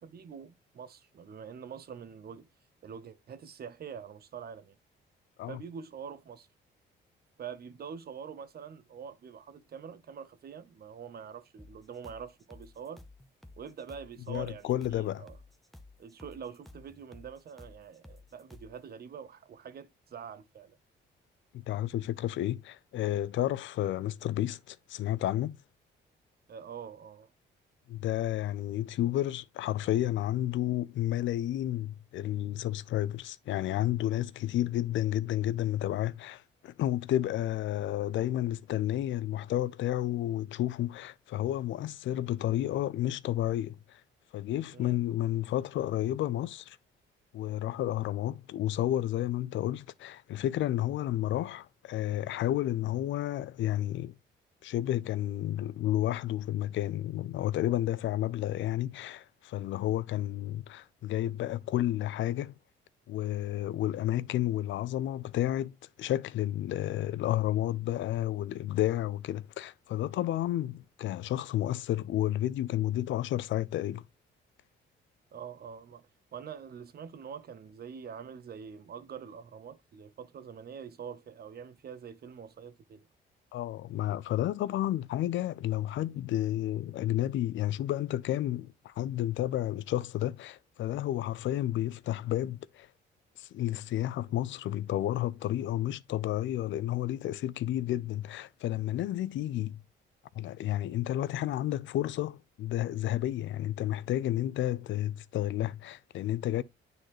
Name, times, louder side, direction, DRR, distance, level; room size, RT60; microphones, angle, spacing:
voice 1, 0.0-2.5 2.8-4.8 5.5-6.5 7.4-13.1 13.6-15.4 16.0-20.8 26.5-27.3 44.7-45.0 75.3-83.1, right 7 dB, 50° right, 0.9 m, -45 dB
sound 1, 11.6-18.8, left 2 dB, ahead, 0.9 m, -53 dB
voice 2, 14.3-15.2 21.5-25.6 27.9-44.0 44.3-46.8 47.3-54.1 54.6-62.5 63.1-65.7 66.0-74.0 83.5-92.9 93.4-99.8 100.3-106.6, left 13 dB, 70° left, 0.5 m, -31 dB
9.0 x 3.9 x 3.1 m
cardioid pair, 90°, 20 cm